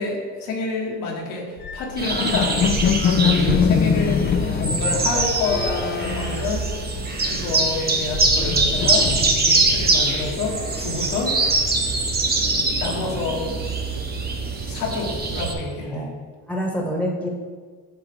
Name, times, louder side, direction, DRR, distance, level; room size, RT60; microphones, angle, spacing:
voice 1, 0.0-2.6 3.2-6.6 7.3-9.1 9.4-11.4 12.8-13.5 14.6-16.1, left 3 dB, 85° left, -1 dB, 1.3 m, -28 dB
sound 1, 1.6-7.2 7.5-9.7, left 7 dB, 35° left, 0.4 m, -24 dB
sound 2, 2.0-15.5, right 3 dB, 30° right, 1.0 m, -23 dB
voice 2, 3.2-3.9 15.9-16.1 16.5-17.3, equal, 5° left, 0 dB, 1.3 m, -27 dB
8.1 x 3.8 x 3.4 m, 1.5 s
cardioid pair, 90°, 33 cm